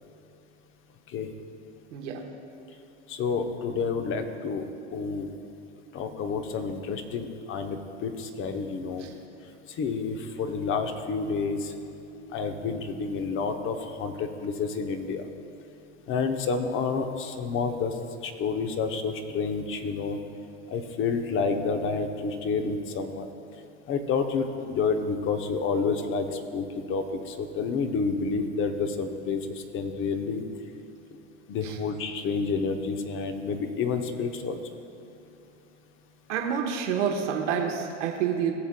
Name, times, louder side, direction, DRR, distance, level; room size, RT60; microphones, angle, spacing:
voice 1, 1.9-2.2 9.0-9.1 31.6-31.8 36.3-38.5, right 7 dB, 80° right, 1 dB, 1.2 m, -28 dB
voice 2, 3.1-4.6 4.9-5.3 5.9-9.0 9.8-11.7 12.3-15.2 16.1-17.9 18.2-20.2 20.7-23.3 23.9-30.4 31.5-34.6, left 5 dB, 35° left, 7 dB, 0.8 m, -29 dB
17.5 x 7.1 x 2.2 m, 2.7 s
hypercardioid pair, 105°, 36 cm